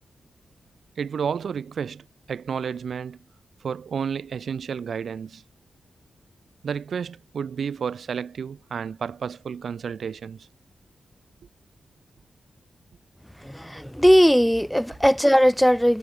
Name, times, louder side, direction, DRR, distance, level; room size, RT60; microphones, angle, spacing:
voice 1, 1.0-3.2 3.6-5.4 6.6-10.5, right 7 dB, 75° right, 5.5 m, -31 dB
voice 2, 13.4-16.0, equal, ahead, 2.9 m, -18 dB
cardioid pair, 65°, 0 cm